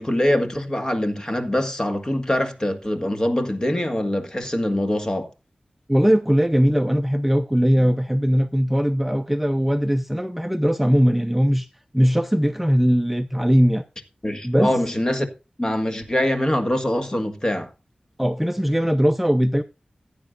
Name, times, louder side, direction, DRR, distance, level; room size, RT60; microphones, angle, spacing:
voice 1, 0.0-5.3 14.2-15.3 15.6-17.7, left 1 dB, 25° left, 1.7 m, -23 dB
voice 2, 5.9-11.7 11.9-13.8 14.4-14.7 18.2-19.6, equal, 5° right, 0.5 m, -20 dB
15.0 x 9.3 x 2.5 m
wide cardioid pair, 90°, 3 cm